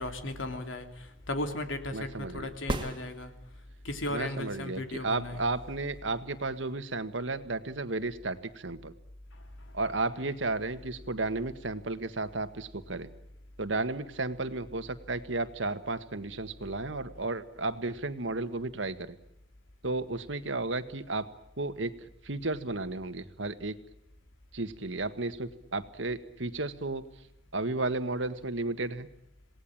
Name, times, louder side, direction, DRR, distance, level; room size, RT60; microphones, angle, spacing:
voice 1, 0.0-3.3 3.8-5.4 9.3-9.4, left 1 dB, 85° left, 7 dB, 3.3 m, -36 dB
voice 2, 1.9-2.5 4.1-8.9 9.7-13.1 13.6-19.2 19.8-21.3 21.6-21.9 22.2-23.8 24.5-27.0 27.5-29.1, right 2 dB, 75° right, 11 dB, 1.7 m, -33 dB
sound 1, 2.7-3.8 7.7-7.8, right 1 dB, 25° right, 2.1 m, -35 dB
27.5 x 18.5 x 8.8 m, 0.84 s
head